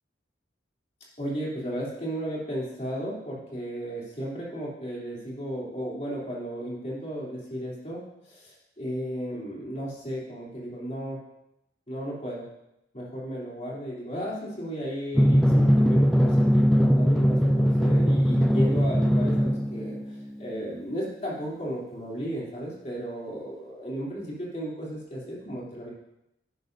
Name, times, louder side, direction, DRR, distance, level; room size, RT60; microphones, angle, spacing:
voice 1, 1.2-11.2 11.9-12.5 12.9-25.9, equal, 35° left, -5 dB, 3.1 m, -34 dB
Drum, 15.1-20.2, equal, ahead, 0.4 m, -21 dB
11.0 x 10.5 x 2.7 m, 0.85 s
head